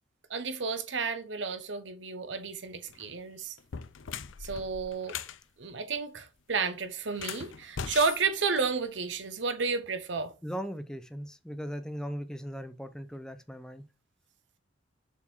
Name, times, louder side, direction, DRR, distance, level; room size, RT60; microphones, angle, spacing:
voice 1, 0.3-3.5 4.4-5.2 5.6-10.3, right 4 dB, 70° right, 1.0 m, -32 dB
sound 1, 2.8-3.1 3.6-5.4 7.1-9.1, left 7 dB, 90° left, 0.6 m, -40 dB
voice 2, 10.4-13.8, equal, 5° left, 0.6 m, -38 dB
7.1 x 4.3 x 4.5 m
head